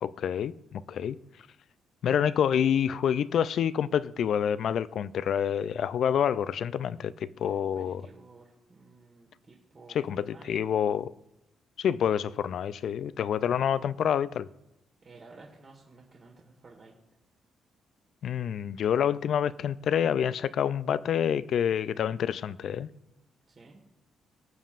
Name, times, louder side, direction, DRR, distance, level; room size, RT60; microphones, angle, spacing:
voice 1, 0.0-1.2 2.0-8.0 9.9-11.1 11.8-14.5 18.2-22.9, left 8 dB, 65° left, 0.3 m, -27 dB
voice 2, 7.4-10.6 15.0-16.9 23.5-23.8, right 3 dB, 40° right, 1.6 m, -53 dB
20.0 x 7.2 x 2.5 m
cardioid pair, 90°, 0 cm